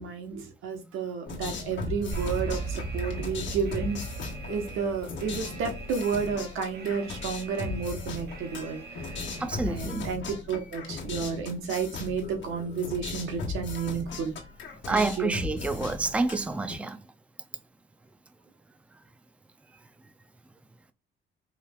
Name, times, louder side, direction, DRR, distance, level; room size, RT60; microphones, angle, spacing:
voice 1, 0.0-4.0 4.5-9.1 9.7-14.3 14.9-15.3, right 6 dB, 90° right, 1.3 m, -31 dB
sound 1, 1.3-16.7, left 4 dB, 70° left, 1.4 m, -38 dB
Alarm, 2.1-9.8, right 3 dB, 55° right, 1.6 m, -39 dB
voice 2, 9.4-10.1 14.8-17.0, right 3 dB, 5° right, 0.5 m, -28 dB
5.6 x 3.2 x 2.4 m
cardioid pair, 90°, 20 cm